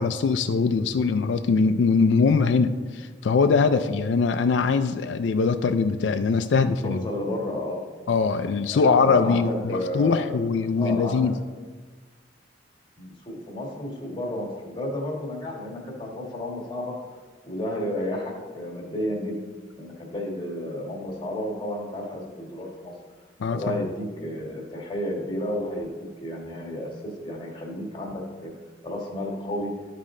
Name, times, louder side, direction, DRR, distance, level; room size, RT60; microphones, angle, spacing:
voice 1, 0.0-7.0 8.1-11.3 23.4-23.8, left 4 dB, 75° left, 9 dB, 0.4 m, -22 dB
voice 2, 6.8-7.8 8.7-10.4 10.8-11.3 13.0-16.9 17.4-19.4 19.8-22.9 23.5-25.9 26.2-28.5 28.8-29.7, left 1 dB, 25° left, -1 dB, 1.7 m, -32 dB
12.5 x 4.2 x 3.7 m, 1.4 s
head